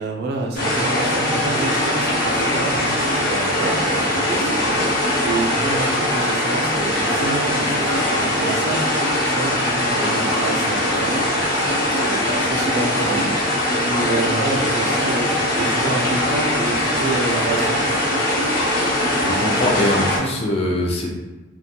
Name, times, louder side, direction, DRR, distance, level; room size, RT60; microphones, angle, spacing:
voice 1, 0.0-13.3 13.8-15.3 15.6-17.9, right 2 dB, 55° right, 1 dB, 0.4 m, -28 dB
sound 1, 0.5-20.2, left 1 dB, 50° left, 0.8 m, -21 dB
voice 2, 19.2-21.1, left 1 dB, 30° left, -1 dB, 0.4 m, -22 dB
2.4 x 2.2 x 2.7 m, 1.1 s
head